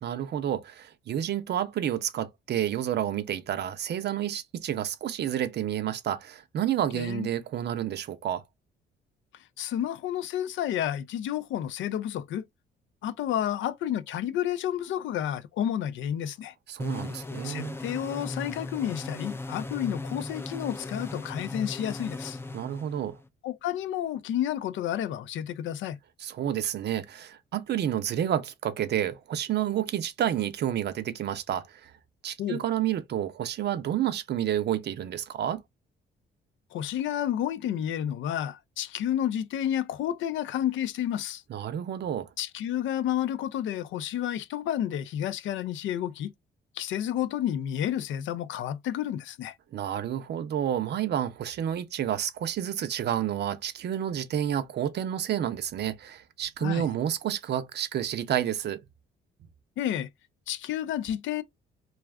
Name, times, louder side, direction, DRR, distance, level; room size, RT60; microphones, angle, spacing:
voice 1, 0.0-8.4 16.7-17.8 22.5-23.2 26.2-31.9 32.2-35.6 41.5-42.3 49.7-58.8, right 10 dB, 60° right, 0.5 m, -30 dB
voice 2, 6.9-7.3 9.6-12.4 13.0-16.5 17.4-22.4 23.4-26.0 32.4-32.6 36.7-41.4 42.4-46.3 46.7-49.5 56.6-56.9 59.8-60.1 60.5-61.4, left 11 dB, 75° left, 0.4 m, -30 dB
sound 1, 16.8-23.3, left 2 dB, 10° left, 0.3 m, -38 dB
2.4 x 2.4 x 3.3 m
cardioid pair, 90°, 20 cm